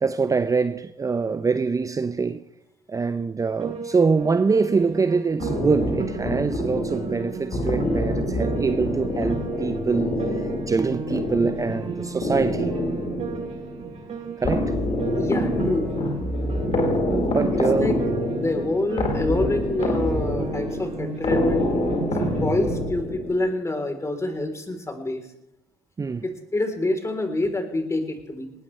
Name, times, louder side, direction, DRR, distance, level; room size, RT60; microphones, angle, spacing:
voice 1, 0.0-2.5 2.9-12.8 14.4-14.8 17.1-18.1 26.0-26.2, right 4 dB, 25° right, 0.7 m, -24 dB
Piano, 3.6-22.8, right 6 dB, 45° right, 7.3 m, -35 dB
sound 1, 5.4-23.5, left 1 dB, 45° left, 4.6 m, -26 dB
voice 2, 15.1-15.9 17.5-18.0 18.4-21.7 22.4-25.3 26.2-28.5, left 2 dB, 20° left, 3.8 m, -26 dB
19.5 x 19.5 x 3.3 m
hypercardioid pair, 60°, 14 cm